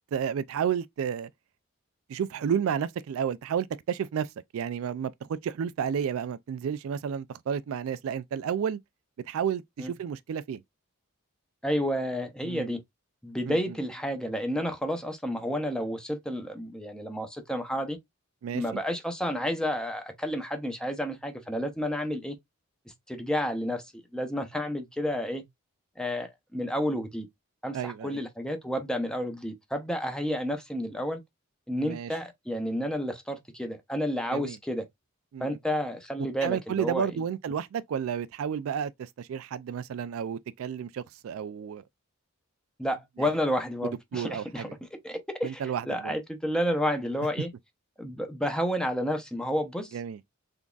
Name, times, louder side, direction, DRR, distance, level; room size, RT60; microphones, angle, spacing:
voice 1, 0.1-1.3 2.1-8.8 9.3-10.6 12.4-12.7 13.5-13.6 18.4-18.8 27.7-28.2 31.7-32.1 34.3-34.6 35.3-35.5 36.4-41.8 43.2-43.3 43.8-44.7 45.4-46.1 49.9-50.2, right 8 dB, 70° right, 0.3 m, -31 dB
voice 2, 11.6-12.8 13.2-18.0 18.5-22.3 23.1-25.4 26.0-27.3 27.6-31.2 31.7-34.8 35.4-37.1 42.8-44.7 45.0-47.5 48.0-50.0, equal, 5° left, 0.6 m, -31 dB
3.8 x 3.5 x 2.3 m
head